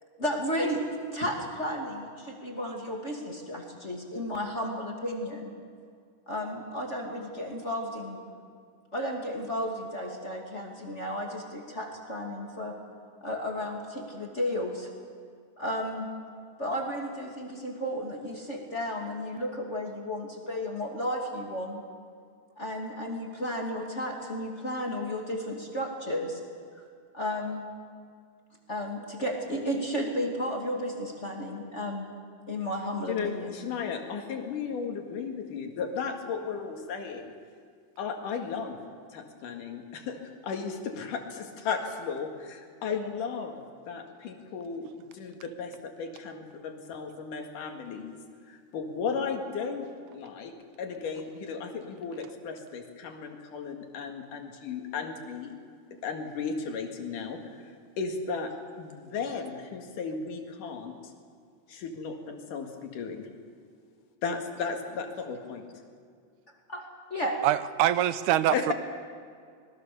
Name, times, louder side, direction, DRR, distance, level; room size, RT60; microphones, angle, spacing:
voice 1, 0.2-0.8 1.1-5.5 6.3-8.2 8.9-12.7 13.2-14.9 15.6-16.1 16.6-21.8 22.6-26.4 26.8-26.9 27.1-27.6 28.7-32.1 32.5-33.5 66.7-66.8 67.1-67.4, equal, 25° left, 0 dB, 2.4 m, -33 dB
voice 2, 33.1-37.3 38.0-38.8 39.1-44.9 45.1-48.2 48.5-55.5 56.0-61.1 61.7-63.3 64.2-65.7 68.5-68.7, left 5 dB, 80° left, 3 dB, 3.6 m, -35 dB
voice 3, 67.4-68.7, right 12 dB, 80° right, 14 dB, 2.1 m, -24 dB
26.0 x 20.5 x 6.9 m, 2.1 s
omnidirectional pair, 3.6 m